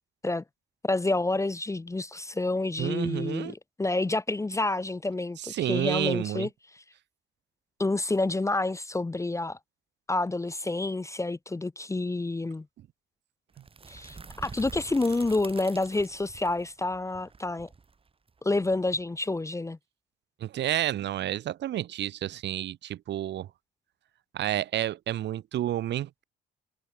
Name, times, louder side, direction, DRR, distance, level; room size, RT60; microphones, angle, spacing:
voice 1, 0.8-5.4 5.7-6.5 6.7-6.8 7.8-9.6 10.1-12.7 13.9-17.7 18.4-19.8, left 2 dB, 15° left, 0.7 m, -28 dB
voice 2, 2.8-3.5 5.4-6.5 20.4-23.5 24.3-26.2, right 12 dB, 60° right, 0.6 m, -30 dB
sound 1, 13.5-19.4, right 4 dB, 30° right, 1.4 m, -47 dB
cardioid pair, 90°, 20 cm